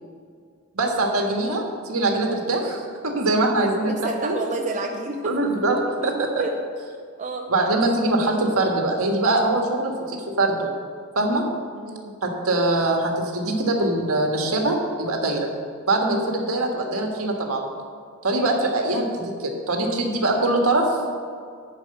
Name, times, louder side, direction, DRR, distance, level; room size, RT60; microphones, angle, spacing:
voice 1, 0.7-3.9 4.2-4.3 5.2-6.4 7.5-10.7 11.1-11.4 12.2-15.5 15.9-17.6 18.2-20.9, right 2 dB, 75° right, 1 dB, 1.6 m, -23 dB
voice 2, 3.8-5.3 6.4-6.5 7.2-7.5 11.8-12.2, right 2 dB, 35° right, 2 dB, 0.6 m, -29 dB
11.0 x 4.8 x 7.7 m, 2.1 s
head